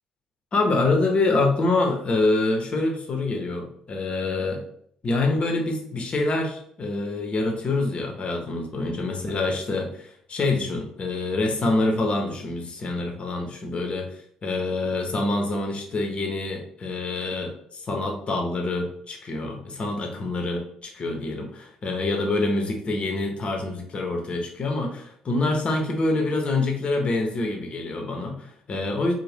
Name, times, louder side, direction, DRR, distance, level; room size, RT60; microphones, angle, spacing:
voice 1, 0.5-4.6 5.0-29.1, left 2 dB, 40° left, 2 dB, 0.7 m, -26 dB
2.6 x 2.1 x 3.3 m, 0.66 s
hypercardioid pair, 50°, 3 cm